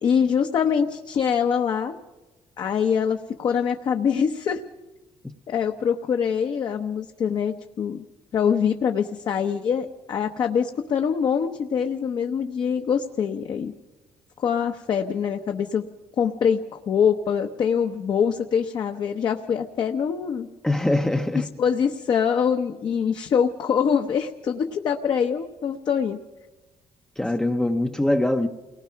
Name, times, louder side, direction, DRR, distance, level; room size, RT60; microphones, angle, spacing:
voice 1, 0.0-2.0 2.6-4.6 5.5-8.0 8.3-13.7 14.4-15.8 16.2-20.5 21.3-26.2, left 7 dB, 45° left, 0.9 m, -24 dB
voice 2, 20.6-21.5 27.2-28.5, left 1 dB, 5° left, 0.7 m, -22 dB
29.0 x 19.5 x 5.8 m
cardioid pair, 170°, 10 cm